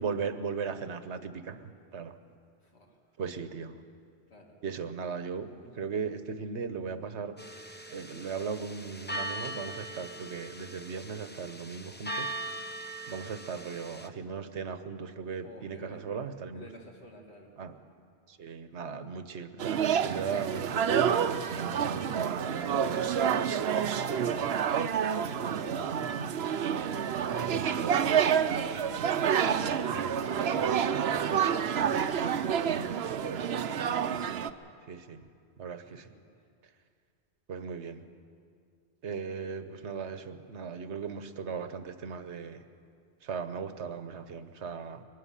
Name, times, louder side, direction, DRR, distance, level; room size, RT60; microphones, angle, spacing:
voice 1, 0.0-1.6 1.9-2.1 3.2-3.7 4.6-7.3 7.9-12.3 13.1-16.6 17.6-17.7 18.3-23.1 27.4-28.2 31.9-32.1 34.9-35.2 35.6-36.1 37.5-38.0 39.0-42.6 43.2-45.0, right 5 dB, 90° right, 10 dB, 1.3 m, -37 dB
voice 2, 2.6-3.0 4.3-4.6 15.4-16.1 16.5-17.5 21.7-22.3 23.7-33.6 35.9-36.5, equal, 75° left, 0 dB, 2.4 m, -49 dB
sound 1, 7.4-14.1, right 1 dB, 10° left, 0.7 m, -40 dB
sound 2, 19.6-34.5, right 8 dB, 70° right, 0.9 m, -28 dB
22.0 x 13.0 x 10.0 m, 2.2 s
omnidirectional pair, 1.1 m